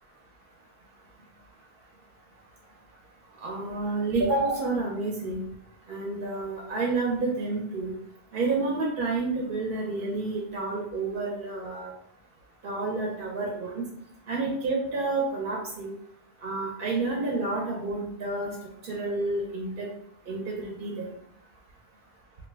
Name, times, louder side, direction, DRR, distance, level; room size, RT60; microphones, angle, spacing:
voice 1, 3.4-5.4 5.9-7.9 8.3-11.9 12.6-13.8 14.3-15.9 16.4-18.5 18.8-19.9 20.3-21.1, right 3 dB, 60° right, -2 dB, 0.7 m, -29 dB
2.5 x 2.1 x 3.2 m, 0.72 s
omnidirectional pair, 1.1 m